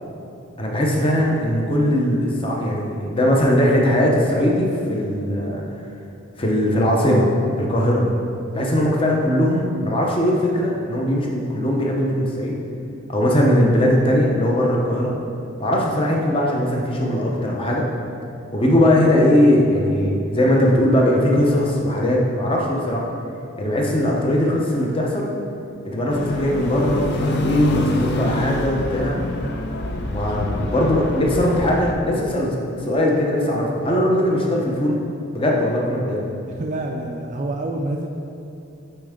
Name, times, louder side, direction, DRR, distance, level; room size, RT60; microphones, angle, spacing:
voice 1, 0.6-5.6 6.4-7.3 7.6-8.0 8.5-12.6 13.1-15.1 15.6-17.9 18.5-23.0 23.6-25.3 25.8-29.2 30.1-35.0 35.3-36.2, left 1 dB, 25° left, -2 dB, 0.8 m, -19 dB
sound 1, 26.1-31.9, left 2 dB, 50° left, 0.5 m, -26 dB
voice 2, 36.5-38.1, right 2 dB, 35° right, 1 dB, 0.4 m, -27 dB
8.7 x 4.4 x 3.6 m, 2.7 s
head